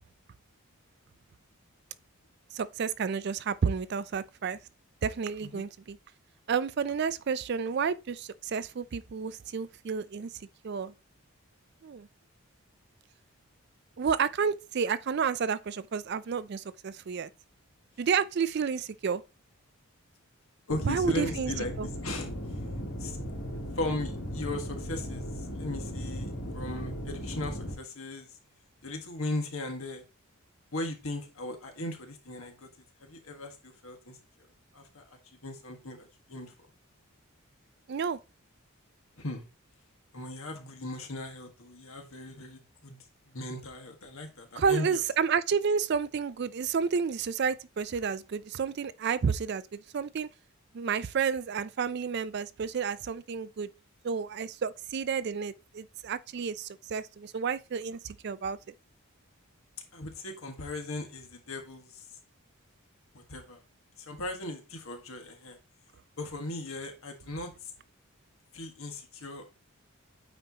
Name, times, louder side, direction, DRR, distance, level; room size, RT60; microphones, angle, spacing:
voice 1, 2.5-4.6 5.0-6.0 6.5-10.3 10.6-10.9 11.8-12.1 14.0-17.3 18.0-19.2 20.8-21.5 21.8-21.9 37.9-38.2 44.6-50.3 50.7-53.7 54.0-58.6, right 6 dB, 50° right, 0.4 m, -30 dB
sound 1, 20.7-27.7, equal, 85° left, 2.1 m, -37 dB
voice 2, 20.7-21.7 22.0-22.3 23.0-23.2 23.7-28.3 28.8-30.0 30.7-32.7 33.0-34.2 34.7-35.0 35.4-36.5 39.2-39.4 40.1-43.0 43.3-45.0 59.9-62.0 63.1-63.6 64.1-65.6 66.2-67.7 68.5-69.6, left 2 dB, 70° left, 1.6 m, -37 dB
8.9 x 4.4 x 2.9 m
head